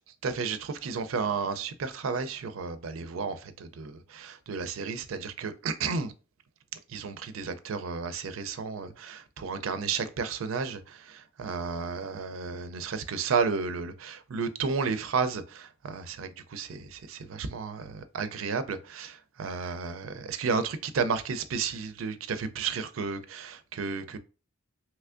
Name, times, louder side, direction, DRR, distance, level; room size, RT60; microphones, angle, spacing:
voice 1, 0.2-6.1 6.9-24.2, right 5 dB, 85° right, 0.4 m, -32 dB
3.3 x 3.0 x 2.5 m
head